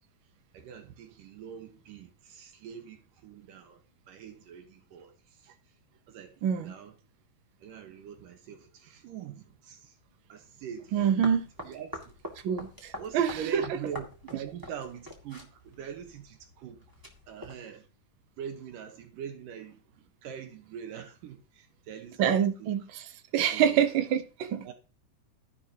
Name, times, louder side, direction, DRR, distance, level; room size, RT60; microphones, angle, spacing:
voice 1, 0.5-5.5 6.1-6.9 7.6-10.0 10.3-12.0 13.0-16.8 17.3-17.9 18.4-22.7 23.5-23.9 24.6-24.7, right 8 dB, 85° right, 2.9 m, -43 dB
voice 2, 6.4-6.7 10.9-11.4 12.4-13.6 22.2-23.0 23.3-24.7, right 8 dB, 65° right, 1.2 m, -26 dB
sound 1, 10.9-17.5, left 1 dB, 10° right, 1.5 m, -46 dB
13.5 x 10.5 x 2.9 m
omnidirectional pair, 3.7 m